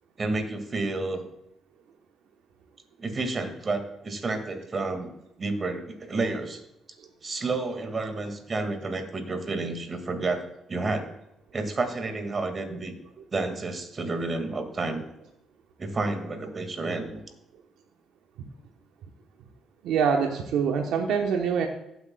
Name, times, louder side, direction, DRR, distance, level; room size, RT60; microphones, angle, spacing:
voice 1, 0.2-1.2 3.0-5.1 5.4-6.6 7.2-10.4 10.7-11.1 11.5-12.9 13.3-15.0 15.8-17.2, right 3 dB, 35° right, 6 dB, 2.0 m, -30 dB
voice 2, 19.8-21.7, right 6 dB, 85° right, 2 dB, 1.0 m, -25 dB
15.5 x 8.1 x 2.3 m, 0.85 s
cardioid pair, 90°, 0 cm